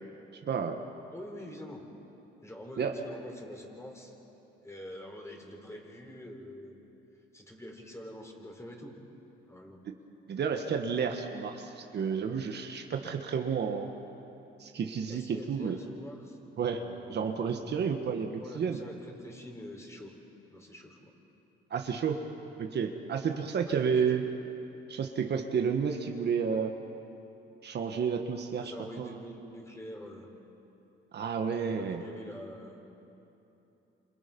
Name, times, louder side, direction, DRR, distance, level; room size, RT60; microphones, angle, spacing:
voice 1, 0.5-0.8 2.8-2.9 10.3-13.9 14.6-15.8 16.6-16.8 17.1-18.8 21.7-22.2 22.6-24.2 24.9-26.7 27.6-28.7 29.0-29.2 31.1-32.0, right 6 dB, 55° right, 4 dB, 1.5 m, -31 dB
voice 2, 1.1-1.9 2.4-4.1 4.6-6.8 7.3-9.0 9.4-9.9 15.1-17.6 18.4-20.1 20.5-21.1 23.6-24.2 28.5-30.3 31.6-32.9, left 1 dB, 15° left, 0 dB, 5.0 m, -46 dB
28.0 x 27.0 x 5.4 m, 3.0 s
cardioid pair, 90°, 20 cm